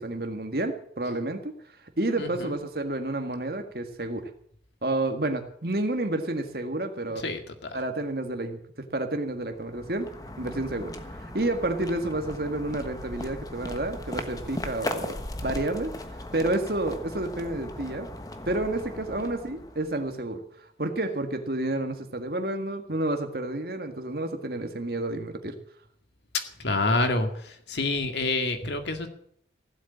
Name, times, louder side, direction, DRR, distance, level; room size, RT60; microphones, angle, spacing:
voice 1, 0.0-1.5 2.0-4.3 4.8-7.2 7.7-10.1 10.4-15.9 16.3-18.1 18.5-20.4 20.8-25.6, right 2 dB, 55° right, 6 dB, 1.7 m, -30 dB
voice 2, 7.2-7.7 26.6-29.1, left 2 dB, 70° left, 6 dB, 2.1 m, -27 dB
sound 1, 9.5-20.2, left 1 dB, 20° left, 1.2 m, -38 dB
16.0 x 8.1 x 8.6 m, 0.65 s
head